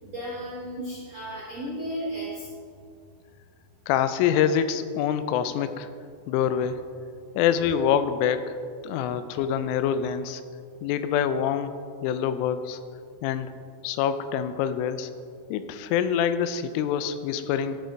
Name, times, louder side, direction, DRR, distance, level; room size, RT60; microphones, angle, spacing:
voice 1, 0.0-2.5, equal, 90° right, -6 dB, 1.4 m, -34 dB
voice 2, 3.9-5.9 6.3-6.8 7.4-8.5 8.8-10.4 10.8-11.7 12.0-12.8 13.2-13.5 13.8-15.1 15.5-17.8, left 8 dB, 90° left, 11 dB, 3.1 m, -25 dB
13.5 x 6.4 x 3.9 m, 2.2 s
omnidirectional pair, 5.6 m